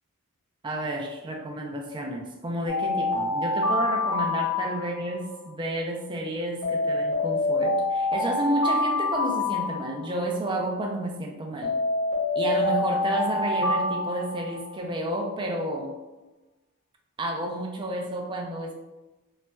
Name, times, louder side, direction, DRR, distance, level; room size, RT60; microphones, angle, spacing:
voice 1, 0.6-11.8 12.3-15.9 17.2-18.8, right 1 dB, 20° right, 0 dB, 0.4 m, -31 dB
Alarm, 2.7-5.3 6.6-10.3 11.6-14.8, left 2 dB, 50° left, 0.9 m, -26 dB
3.9 x 2.2 x 2.2 m, 1.1 s
head